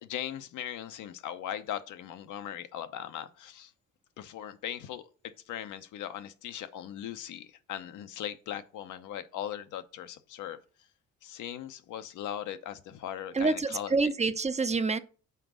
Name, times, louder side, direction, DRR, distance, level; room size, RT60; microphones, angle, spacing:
voice 1, 0.0-3.7 4.2-5.0 5.5-10.6 11.2-14.1, left 10 dB, 80° left, 0.8 m, -39 dB
voice 2, 13.4-15.0, right 3 dB, 20° right, 0.5 m, -27 dB
5.8 x 4.0 x 6.1 m
cardioid pair, 90°, 30 cm